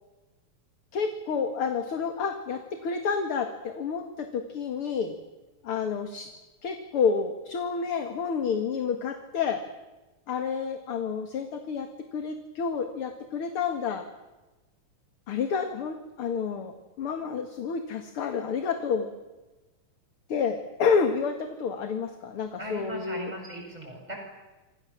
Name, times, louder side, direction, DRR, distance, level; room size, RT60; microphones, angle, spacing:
voice 1, 0.9-5.2 5.6-6.3 6.6-9.6 10.3-14.1 15.3-19.1 20.3-23.3, left 6 dB, 50° left, 6 dB, 2.5 m, -29 dB
voice 2, 22.6-24.2, equal, 10° right, 1 dB, 7.7 m, -38 dB
27.5 x 26.0 x 7.5 m, 1.1 s
omnidirectional pair, 3.5 m